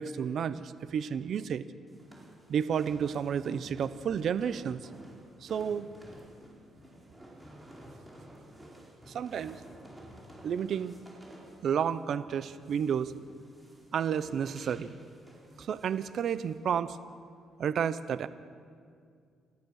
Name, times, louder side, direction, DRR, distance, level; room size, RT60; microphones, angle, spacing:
voice 1, 0.0-1.6 2.5-4.9 5.4-5.9 9.1-9.6 10.4-10.9 11.6-13.1 13.9-14.9 15.6-17.0 17.6-18.3, right 8 dB, 65° right, 14 dB, 0.8 m, -31 dB
sound 1, 1.9-16.6, right 1 dB, 10° right, 4.6 m, -52 dB
29.5 x 14.0 x 6.6 m, 2.2 s
cardioid pair, 90°, 0 cm